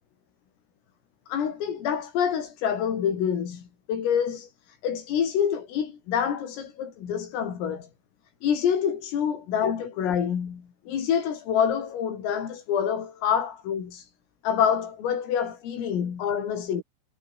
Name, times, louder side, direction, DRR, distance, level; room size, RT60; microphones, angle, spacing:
voice 1, 1.3-7.9 8.4-14.1 14.4-16.8, left 8 dB, 90° left, 6.8 m, -27 dB
omnidirectional pair, 5.8 m